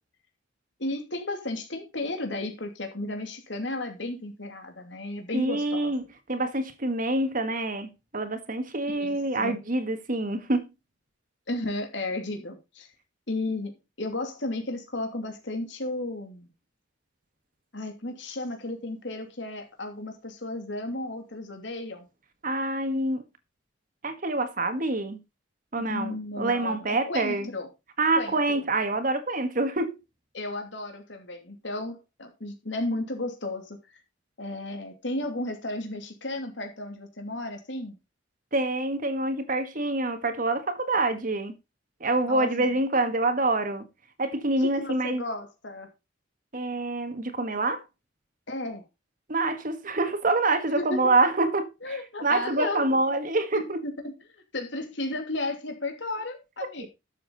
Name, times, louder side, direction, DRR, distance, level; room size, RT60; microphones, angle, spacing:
voice 1, 0.8-5.9 8.9-9.1 9.4-9.6 11.5-12.9 13.3-16.5 17.7-22.1 25.8-27.7 28.2-28.6 30.3-34.0 34.4-38.0 42.3-42.7 44.6-45.9 48.5-48.8 50.8-51.0 51.8-53.0 53.5-54.1 54.5-56.9, left 2 dB, 70° left, 2.9 m, -34 dB
voice 2, 5.3-10.6 22.4-23.2 24.0-25.2 25.7-27.5 28.0-30.0 38.5-41.5 42.0-43.8 44.2-45.2 46.5-47.8 49.3-53.8, right 2 dB, 45° right, 1.6 m, -26 dB
12.0 x 7.5 x 4.1 m
head